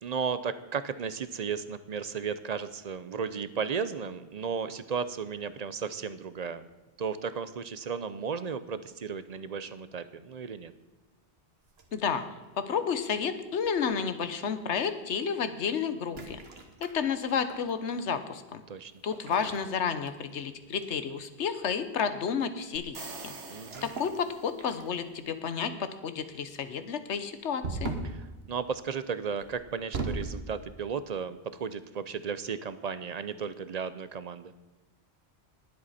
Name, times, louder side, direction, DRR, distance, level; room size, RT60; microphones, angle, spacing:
voice 1, 0.0-6.7 7.0-10.7 18.7-18.9 23.5-23.9 28.0-28.2 28.5-34.5, right 6 dB, 45° right, 13 dB, 0.6 m, -34 dB
sound 1, 11.7-12.5 13.6-14.0 16.0-17.7 19.1-20.5 20.8-21.1 23.6-24.2 24.6-25.2 27.6-28.2 29.4-30.4, right 3 dB, 65° right, 1.5 m, -38 dB
voice 2, 11.9-12.2 12.5-16.4 16.8-18.6 19.0-23.3 23.8-27.9, left 6 dB, 90° left, 10 dB, 1.2 m, -31 dB
sound 2, 22.8-24.8, right 3 dB, 85° right, 1.7 m, -45 dB
20.0 x 7.9 x 4.2 m, 1.2 s
omnidirectional pair, 1.1 m